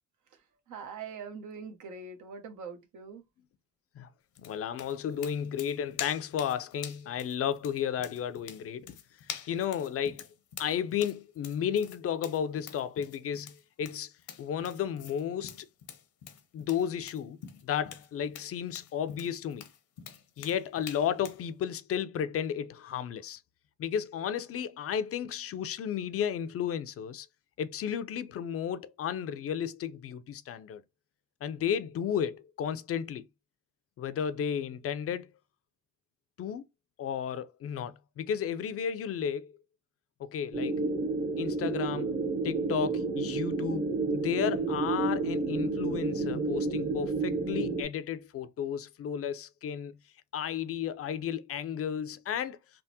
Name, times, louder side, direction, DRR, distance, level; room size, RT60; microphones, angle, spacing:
voice 1, 0.7-3.2, right 5 dB, 80° right, 0.8 m, -42 dB
sound 1, 4.4-21.4, left 9 dB, 75° left, 0.7 m, -46 dB
voice 2, 4.4-9.0 9.2-10.3 10.6-14.1 14.4-15.7 16.5-19.7 20.4-23.4 23.8-27.3 27.6-30.8 31.4-33.2 34.0-35.3 36.4-36.6 37.0-39.6 40.2-40.8 41.4-42.2 42.4-50.0 50.3-52.6, left 8 dB, 50° left, 0.4 m, -33 dB
sound 2, 40.5-47.8, right 3 dB, 30° right, 0.7 m, -30 dB
3.5 x 2.0 x 2.6 m
cardioid pair, 90°, 30 cm